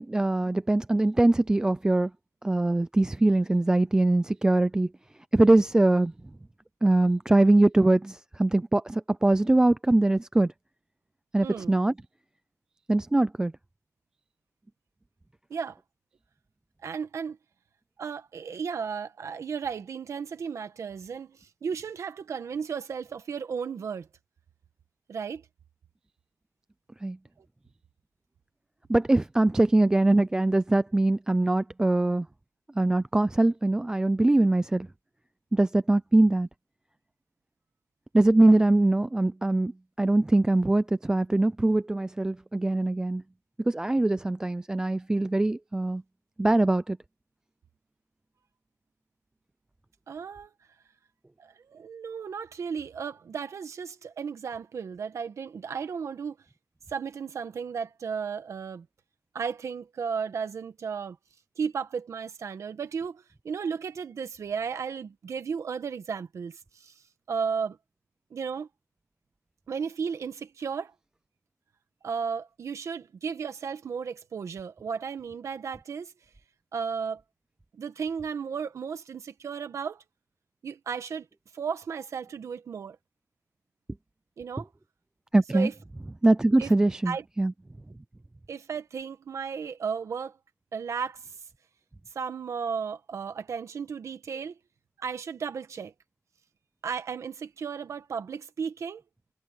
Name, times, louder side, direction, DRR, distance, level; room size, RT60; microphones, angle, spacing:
voice 1, 0.0-2.1 2.4-4.9 5.3-6.1 6.8-10.5 11.3-11.9 12.9-13.5 27.0-27.2 28.9-32.3 32.8-34.9 35.5-36.5 38.1-39.7 40.0-43.2 43.7-46.0 46.4-47.0 85.3-85.7 86.2-87.5, right 2 dB, 15° right, 0.3 m, -22 dB
voice 2, 11.4-11.7 15.5-15.8 16.8-17.4 18.0-24.1 25.1-25.4 50.1-50.5 51.4-56.4 56.9-58.8 59.3-61.2 61.6-66.9 67.3-67.8 68.3-68.7 69.7-70.9 72.0-76.1 76.7-77.2 77.8-80.0 80.6-81.2 81.5-83.0 84.4-84.7 85.5-85.7 86.6-86.7 87.0-87.2 88.5-90.4 90.7-91.2 92.1-94.5 95.0-95.9 96.8-99.0, right 6 dB, 65° right, 1.6 m, -34 dB
wide cardioid pair, 165°, 5 cm